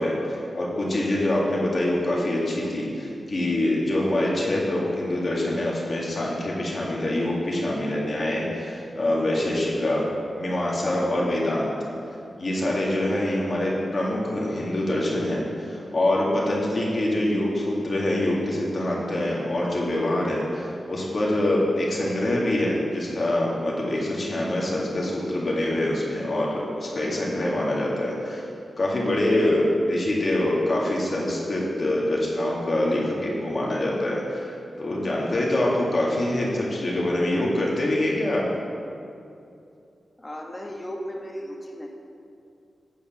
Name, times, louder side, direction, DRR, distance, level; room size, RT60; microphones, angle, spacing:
voice 1, 0.0-10.1 10.4-11.7 12.4-28.5 28.8-38.4, left 1 dB, 50° left, -4 dB, 2.0 m, -25 dB
voice 2, 40.2-41.9, equal, 25° left, 0 dB, 1.2 m, -35 dB
8.4 x 4.7 x 7.2 m, 2.6 s
cardioid pair, 75°, 0 cm